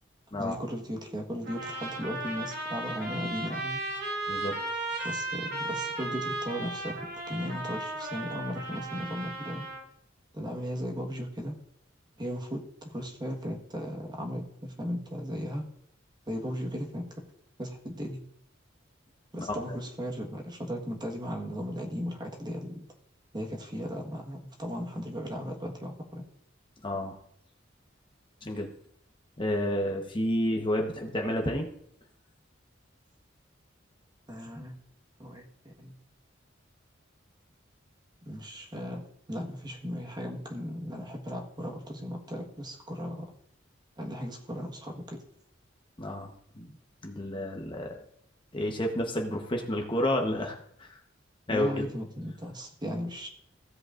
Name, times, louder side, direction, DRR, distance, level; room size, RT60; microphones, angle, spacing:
voice 1, 0.4-3.8 5.0-9.6 10.3-11.6 12.2-15.7 16.3-17.2 17.6-18.3 19.3-22.9 23.3-26.2 34.3-34.8 35.2-36.0 38.2-43.3 44.0-45.2 51.5-53.3, equal, 25° right, 1 dB, 1.4 m, -36 dB
sound 1, 1.4-9.8, right 2 dB, 70° right, 3.8 m, -35 dB
voice 2, 4.3-4.6 5.0-5.1 19.5-19.6 26.8-27.2 28.4-28.7 29.4-31.7 46.0-46.7 47.0-47.9 48.5-50.9 51.5-51.9, left 1 dB, 25° left, 2 dB, 1.1 m, -30 dB
16.0 x 7.9 x 2.5 m, 0.71 s
head